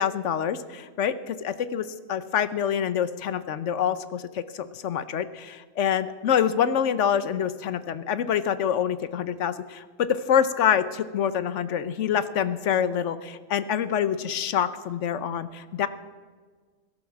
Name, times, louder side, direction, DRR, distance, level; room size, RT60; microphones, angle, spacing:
voice 1, 0.0-15.9, left 8 dB, 70° left, 14 dB, 1.1 m, -26 dB
17.0 x 12.0 x 7.2 m, 1.5 s
omnidirectional pair, 1.3 m